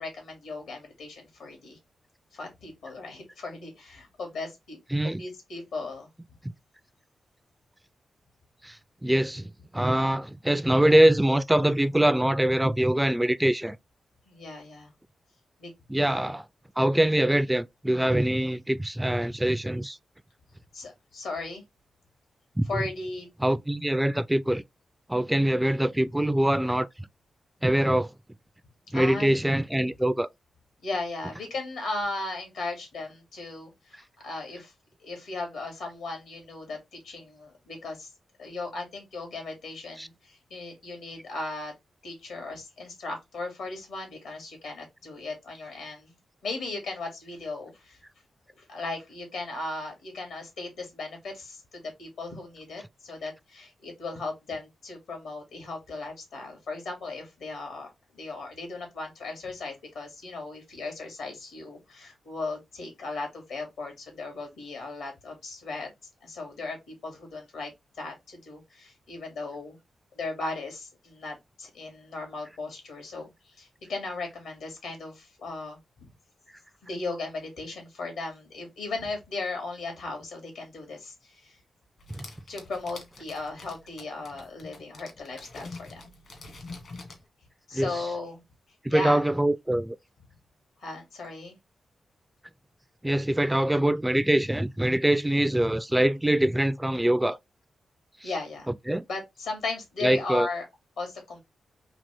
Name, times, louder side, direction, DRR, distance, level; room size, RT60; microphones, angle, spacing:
voice 1, 0.0-1.8 2.3-4.8 5.0-6.1 14.2-14.9 15.6-15.7 20.7-21.6 22.7-23.3 28.9-29.3 30.8-34.7 35.0-38.1 38.4-41.7 42.0-46.1 46.4-48.0 48.6-65.9 66.2-67.7 68.0-69.8 70.1-76.1 76.8-81.6 82.5-86.0 87.7-88.4 88.9-89.2 90.8-91.6 98.2-98.7 99.1-100.7 101.0-101.4, left 3 dB, 85° left, 2.2 m, -37 dB
voice 2, 4.9-5.2 8.6-13.8 15.9-16.5 16.8-20.0 22.6-22.8 23.4-24.6 25.1-26.9 27.6-28.1 28.9-30.3 40.0-40.1 82.1-82.3 87.7-88.1 88.8-90.0 93.0-97.4 98.2-98.3 98.7-99.1 100.0-100.5, right 1 dB, 10° right, 0.4 m, -24 dB
sound 1, 82.0-87.2, left 3 dB, 70° left, 1.6 m, -45 dB
3.9 x 2.9 x 3.3 m
supercardioid pair, 45°, 0 cm